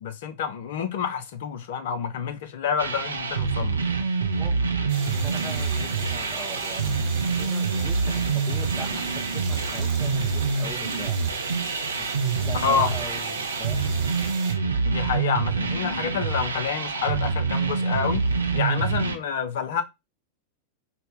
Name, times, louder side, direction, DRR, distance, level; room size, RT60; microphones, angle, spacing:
voice 1, 0.0-3.8 12.6-12.9 14.8-18.2 18.5-19.8, left 7 dB, 55° left, 0.5 m, -28 dB
sound 1, 2.8-19.2, right 4 dB, 75° right, 0.5 m, -26 dB
voice 2, 4.4-11.2 12.0-13.9, left 1 dB, 10° left, 0.6 m, -41 dB
sound 2, 4.9-14.5, right 5 dB, 50° right, 0.9 m, -38 dB
sound 3, 5.6-5.7 6.6-7.1 7.4-7.7 8.7-8.8 9.4-10.0 10.9-11.0, right 2 dB, 15° right, 1.0 m, -47 dB
4.0 x 2.2 x 3.5 m
figure-of-eight pair, 90°, 0 cm